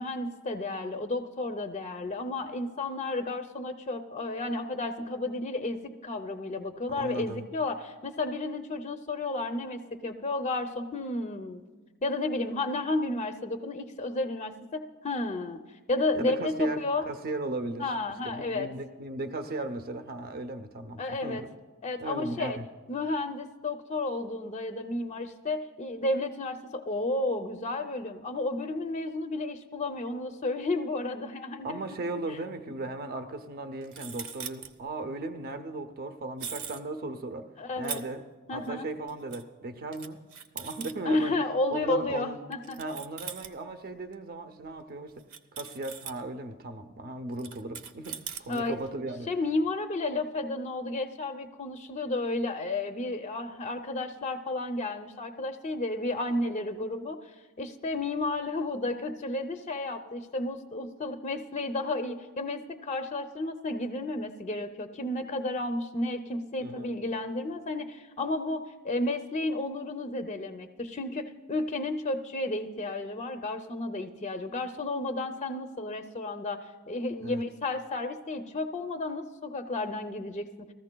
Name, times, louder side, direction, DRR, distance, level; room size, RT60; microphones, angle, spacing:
voice 1, 0.0-11.6 12.0-15.6 15.9-17.1 17.8-18.7 21.0-21.4 21.8-22.6 22.9-31.8 37.6-38.0 38.5-38.9 41.0-42.8 48.5-48.8 49.3-57.2 57.6-80.4, left 2 dB, 30° left, 6 dB, 0.5 m, -32 dB
voice 2, 7.0-7.5 16.1-17.8 18.2-21.5 22.0-22.7 31.6-37.5 37.8-38.2 38.5-40.2 40.5-41.3 41.7-42.4 42.8-45.2 45.5-49.3 66.6-66.9 77.2-77.4, right 2 dB, 45° right, 6 dB, 0.6 m, -37 dB
sound 1, 32.0-32.1 33.8-34.7 36.4-36.8 37.8-38.0 38.6-38.7 39.1-39.4 39.9-40.9 42.5-43.6 44.1-44.2 44.7-44.8 45.2-46.2 47.3-48.9, right 7 dB, 80° right, 0.8 m, -40 dB
20.0 x 14.5 x 2.2 m, 1.3 s
head